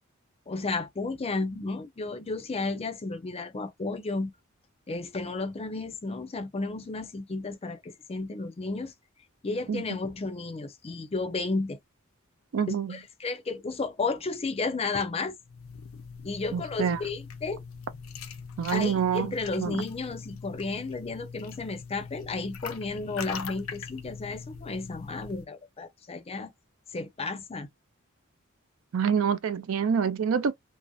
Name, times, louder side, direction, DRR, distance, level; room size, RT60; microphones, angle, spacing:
voice 1, 0.5-4.3 4.9-8.9 9.4-11.8 12.7-15.4 16.2-17.6 18.7-26.5 26.9-27.7, left 3 dB, 30° left, 0.5 m, -33 dB
voice 2, 12.5-13.0 16.5-17.0 18.6-19.8 28.9-30.5, right 7 dB, 75° right, 0.4 m, -27 dB
sound 1, 15.4-25.5, left 5 dB, 80° left, 0.5 m, -42 dB
2.6 x 2.0 x 2.3 m
head